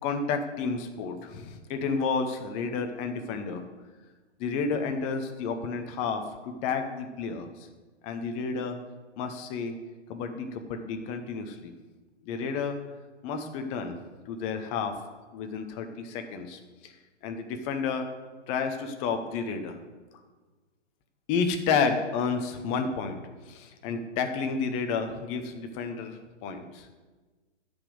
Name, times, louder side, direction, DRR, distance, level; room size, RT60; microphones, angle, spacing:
voice 1, 0.0-3.6 4.4-7.5 8.0-8.8 9.2-9.7 10.1-11.7 12.3-12.8 13.2-14.0 14.3-15.0 15.3-16.9 17.2-18.1 18.5-19.8 21.3-23.2 23.5-26.9, left 5 dB, 20° left, 6 dB, 0.8 m, -31 dB
11.5 x 5.3 x 7.8 m, 1.3 s
hypercardioid pair, 140°, 35 cm